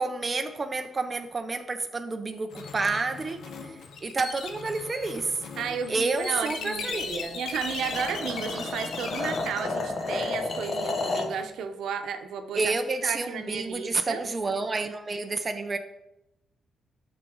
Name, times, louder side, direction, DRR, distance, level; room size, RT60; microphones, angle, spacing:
voice 1, 0.0-5.4 5.9-7.4 12.5-15.8, right 3 dB, 25° right, 6 dB, 0.5 m, -29 dB
sound 1, 2.5-9.5, left 5 dB, 80° left, 1.0 m, -38 dB
voice 2, 5.6-7.0 7.3-12.7 13.0-14.2, right 6 dB, 85° right, 7 dB, 0.8 m, -33 dB
sound 2, 7.0-11.4, left 3 dB, 35° left, 0.9 m, -32 dB
8.8 x 6.1 x 3.8 m, 0.88 s
wide cardioid pair, 175°, 0 cm